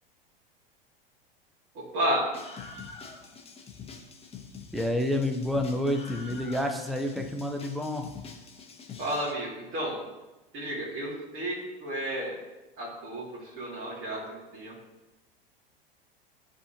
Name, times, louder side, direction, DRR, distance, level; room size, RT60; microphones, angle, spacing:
voice 1, 1.7-2.3 9.0-10.0 10.5-12.3 12.8-14.7, equal, 40° right, -6 dB, 2.2 m, -32 dB
Screaming, 2.3-9.3, left 5 dB, 20° left, 0.9 m, -45 dB
voice 2, 4.7-8.1, left 1 dB, ahead, 4 dB, 0.6 m, -29 dB
10.5 x 3.6 x 2.8 m, 1.1 s
hypercardioid pair, 90°, 29 cm